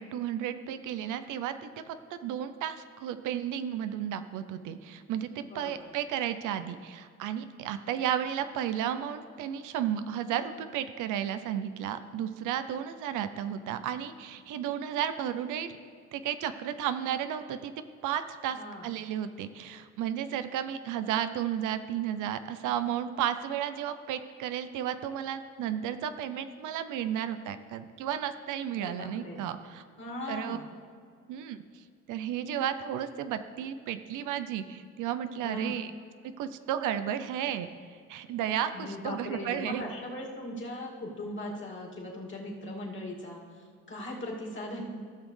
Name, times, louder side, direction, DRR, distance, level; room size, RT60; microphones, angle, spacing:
voice 1, 0.0-15.7 16.1-17.7 18.0-29.8 30.3-30.6 31.3-31.6 32.1-35.9 36.4-37.7 38.1-39.8, right 10 dB, 90° right, 11 dB, 0.6 m, -33 dB
voice 2, 5.4-5.9 18.5-18.9 28.8-29.5 30.0-30.7 35.4-35.8 38.7-44.8, left 1 dB, 40° left, -3 dB, 2.4 m, -39 dB
15.5 x 6.3 x 3.2 m, 2.2 s
cardioid pair, 90°, 30 cm